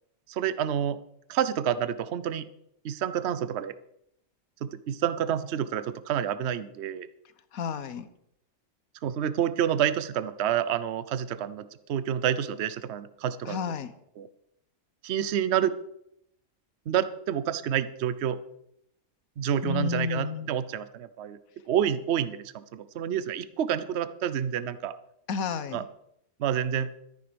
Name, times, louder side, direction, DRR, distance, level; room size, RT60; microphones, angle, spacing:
voice 1, 0.3-1.0 1.3-2.5 2.8-3.7 4.6-7.1 9.0-13.6 14.2-14.3 15.0-15.7 16.9-18.4 19.4-21.4 21.7-25.0 25.7-25.8 26.4-26.9, right 9 dB, 55° right, 15 dB, 0.9 m, -28 dB
voice 2, 7.5-8.1 13.5-13.9 19.6-20.5 25.3-25.9, left 6 dB, 80° left, 13 dB, 1.4 m, -31 dB
13.5 x 10.5 x 5.1 m, 0.76 s
omnidirectional pair, 1.5 m